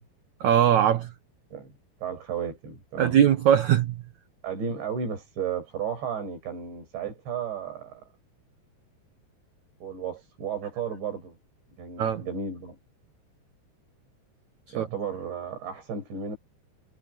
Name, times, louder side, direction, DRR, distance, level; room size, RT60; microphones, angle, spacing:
voice 1, 0.4-1.1 3.0-4.0 12.0-12.2 14.8-14.9, right 10 dB, 60° right, 2.0 m, -21 dB
voice 2, 2.0-3.2 4.4-8.0 9.8-11.4 11.8-12.8 14.7-16.4, right 6 dB, 90° right, 8.6 m, -33 dB
omnidirectional pair, 5.0 m